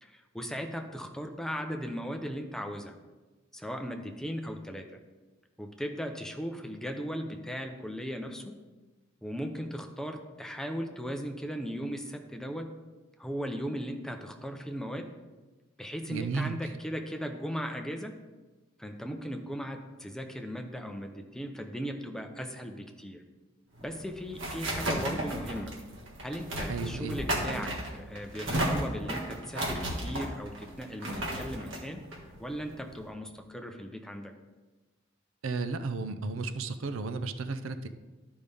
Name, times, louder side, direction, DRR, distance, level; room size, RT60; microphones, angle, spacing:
voice 1, 0.0-2.9 3.5-5.0 5.6-8.6 9.2-12.7 13.2-15.1 15.8-18.1 18.8-23.2 23.8-25.7 26.2-32.1 32.4-34.4, equal, 5° left, 4 dB, 0.6 m, -37 dB
voice 2, 16.1-16.6 26.7-27.2 35.4-37.9, right 4 dB, 85° right, 10 dB, 0.5 m, -33 dB
sound 1, 23.8-33.1, right 1 dB, 70° right, 1.5 m, -34 dB
12.0 x 5.4 x 3.5 m, 1.2 s
head